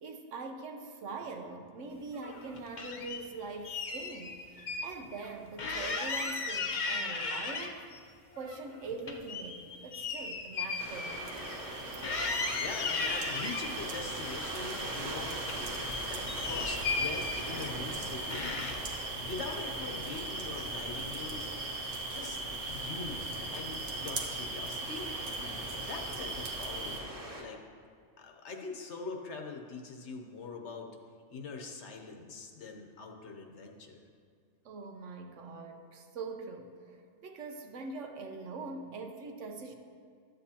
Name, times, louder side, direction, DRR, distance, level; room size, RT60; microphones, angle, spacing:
voice 1, 0.0-7.8 8.4-11.6 34.6-37.0 37.2-39.7, right 3 dB, 70° right, 5 dB, 1.1 m, -43 dB
sound 1, 2.2-3.2 3.6-4.9 5.2-5.3 5.6-8.0 8.4-11.8 12.0-13.7 14.3-15.1 15.4-17.9 18.3-19.0, left 4 dB, 45° left, 0.6 m, -36 dB
sound 2, 10.5-27.0, right 2 dB, 90° right, 1.3 m, -40 dB
sound 3, 10.8-27.4, right 1 dB, 40° right, 1.3 m, -43 dB
voice 2, 12.6-15.4 16.1-18.5 19.2-21.5 22.0-22.4 22.7-25.1 25.8-27.6 28.2-30.9 31.3-34.0, left 4 dB, 65° left, 2 dB, 1.1 m, -43 dB
12.5 x 8.0 x 2.8 m, 2.2 s
omnidirectional pair, 1.3 m